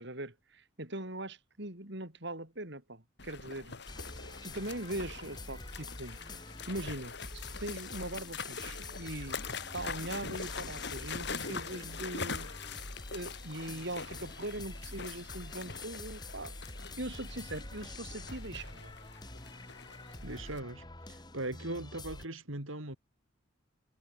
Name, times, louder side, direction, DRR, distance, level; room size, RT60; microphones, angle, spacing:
voice 1, 0.0-3.8 4.4-6.2 6.7-9.4 9.7-12.8 13.1-16.5 17.0-18.9, right 1 dB, 60° right, 5.1 m, -41 dB
sound 1, 3.2-20.6, left 5 dB, 60° left, 4.7 m, -44 dB
sound 2, 3.9-22.3, left 2 dB, 20° left, 2.8 m, -46 dB
voice 2, 20.2-23.0, right 2 dB, 85° right, 5.0 m, -39 dB
head